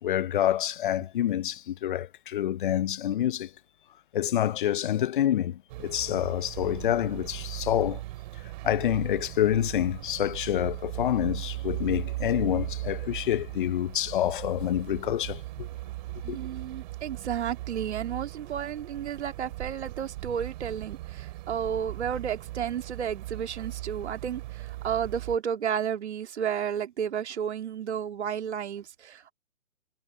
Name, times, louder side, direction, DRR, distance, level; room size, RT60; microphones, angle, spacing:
voice 1, 0.0-3.5 4.1-8.0 8.6-15.7 16.3-16.4, left 11 dB, 40° left, 0.9 m, -27 dB
sound 1, 5.7-25.4, right 17 dB, 35° right, 2.8 m, -38 dB
voice 2, 16.2-29.3, right 8 dB, 55° right, 2.4 m, -32 dB
figure-of-eight pair, 135°, 41 cm